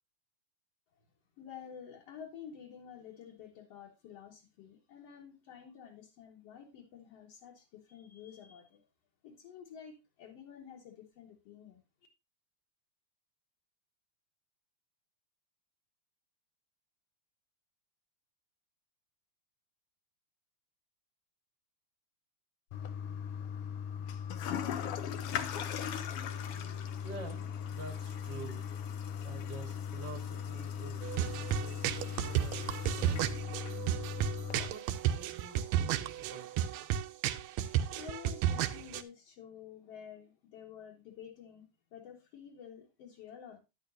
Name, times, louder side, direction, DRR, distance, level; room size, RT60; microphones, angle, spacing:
voice 1, 1.4-8.8 9.2-11.8 37.9-43.6, left 8 dB, 60° left, -2 dB, 2.2 m, -50 dB
Toilet flush, 22.7-34.7, left 8 dB, 80° left, 1.3 m, -38 dB
voice 2, 27.0-27.4 27.7-28.6 29.2-33.9 34.6-36.8, right 4 dB, 45° right, 0 dB, 1.8 m, -49 dB
sound 1, 31.0-39.0, right 11 dB, 75° right, 1.6 m, -33 dB
10.0 x 8.9 x 2.6 m, 0.25 s
omnidirectional pair, 3.5 m